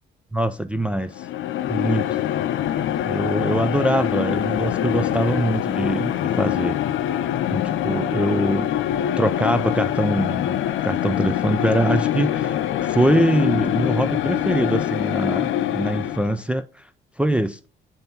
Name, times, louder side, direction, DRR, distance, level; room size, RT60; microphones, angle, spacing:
voice 1, 0.3-1.3 1.7-2.2 3.0-6.8 7.5-8.7 9.2-10.5 10.8-16.8 17.2-17.7, right 1 dB, 5° right, 0.4 m, -23 dB
sound 1, 1.1-16.4, left 11 dB, 75° left, 0.6 m, -24 dB
7.7 x 2.8 x 5.8 m
cardioid pair, 90°, 20 cm